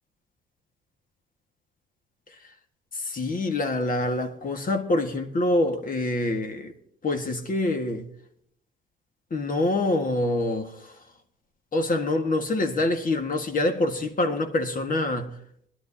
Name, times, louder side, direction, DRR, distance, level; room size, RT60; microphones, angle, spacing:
voice 1, 2.9-6.7 7.0-8.1 9.3-10.9 11.7-15.3, left 2 dB, 45° left, 1.8 m, -26 dB
20.5 x 11.5 x 2.8 m
cardioid pair, 90°, 20 cm